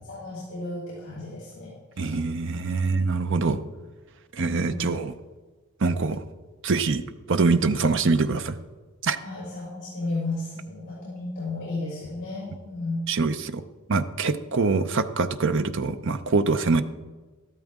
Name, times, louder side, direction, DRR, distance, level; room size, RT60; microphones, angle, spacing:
voice 1, 0.0-2.2 2.4-2.5 4.4-4.9 9.2-13.1, left 2 dB, 55° left, -7 dB, 4.7 m, -34 dB
voice 2, 2.0-3.6 4.3-5.1 5.8-6.2 6.6-7.0 7.3-8.6 9.0-9.2 13.1-13.6 13.9-16.8, right 4 dB, 55° right, 10 dB, 0.6 m, -24 dB
13.5 x 12.5 x 3.6 m, 1.3 s
head